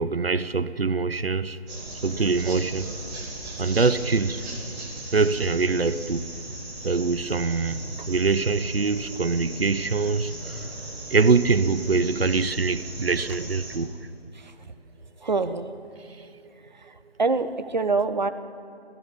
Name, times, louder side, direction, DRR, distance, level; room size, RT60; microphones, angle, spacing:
voice 1, 0.0-1.6 2.0-2.9 3.6-4.4 5.1-6.2 6.8-10.3 11.1-13.9, right 4 dB, 60° right, 14 dB, 1.1 m, -23 dB
sound 1, 1.7-13.8, right 2 dB, 5° right, 1.3 m, -37 dB
voice 2, 15.2-15.8 16.2-16.3 16.6-18.3, right 3 dB, 45° right, 10 dB, 1.2 m, -26 dB
29.0 x 15.0 x 7.3 m, 2.6 s
figure-of-eight pair, 165°, 33 cm